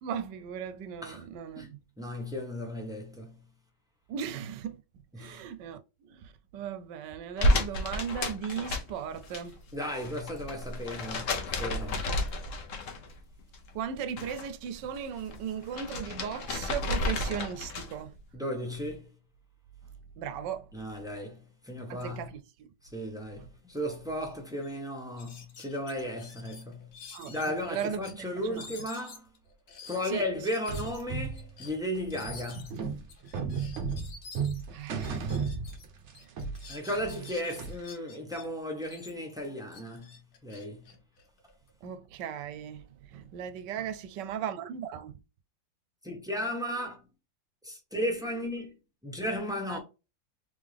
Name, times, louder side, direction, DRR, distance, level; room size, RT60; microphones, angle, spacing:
voice 1, 0.0-1.8 4.1-4.8 5.2-9.6 13.7-18.1 20.2-20.7 21.9-22.7 23.4-23.5 27.1-28.7 30.1-30.2 34.7-35.5 36.3-36.4 41.8-45.2 49.7-49.8, right 8 dB, 80° right, 1.2 m, -37 dB
voice 2, 2.0-3.4 5.1-5.4 9.7-12.1 18.3-19.1 20.7-22.3 22.8-26.9 27.3-29.3 29.8-32.9 36.7-40.9 46.0-47.1 47.6-48.7 49.0-49.8, equal, 5° right, 0.9 m, -35 dB
sound 1, 7.4-9.4 9.7-13.2 13.5-14.5 14.8-18.1, left 1 dB, 55° left, 1.1 m, -31 dB
sound 2, 24.2-24.3 24.6-24.8 25.2-28.1 28.5-35.9 36.1-38.4 38.8-41.7, left 5 dB, 70° left, 1.7 m, -49 dB
sound 3, 30.7-36.1 36.4-37.9, right 5 dB, 55° right, 0.9 m, -34 dB
3.5 x 3.5 x 3.3 m
omnidirectional pair, 1.9 m